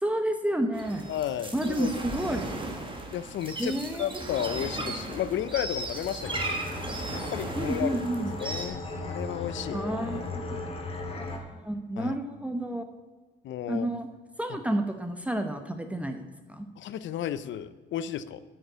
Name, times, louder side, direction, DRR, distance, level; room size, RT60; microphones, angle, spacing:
voice 1, 0.0-1.1 1.5-2.5 3.6-4.1 7.6-8.3 9.7-10.4 11.1-12.9 13.7-14.1 14.4-16.2 16.5-16.7, right 1 dB, 5° right, 6 dB, 0.9 m, -30 dB
sound 1, 0.7-8.7, right 2 dB, 25° right, 1.7 m, -36 dB
voice 2, 1.1-1.9 3.1-6.6 7.1-8.0 8.4-9.8 12.0-12.2 13.4-13.9 14.5-14.6 16.8-18.4, left 11 dB, 70° left, 15 dB, 0.6 m, -33 dB
sound 2, 6.2-11.4, left 2 dB, 30° left, 1.9 m, -36 dB
8.7 x 6.6 x 8.2 m, 1.3 s
cardioid pair, 90°, 20 cm